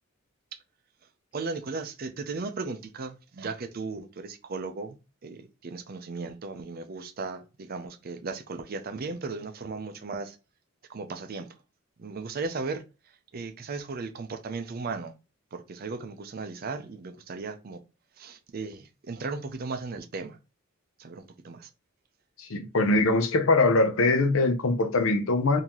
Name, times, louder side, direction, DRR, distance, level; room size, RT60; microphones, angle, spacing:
voice 1, 1.3-5.0 5.2-10.4 10.9-11.5 12.0-12.8 13.3-15.1 15.5-17.8 18.2-20.4 21.0-21.7, right 4 dB, 50° right, 0.5 m, -36 dB
voice 2, 22.4-25.6, left 2 dB, 80° left, 0.7 m, -22 dB
3.8 x 2.7 x 3.0 m
head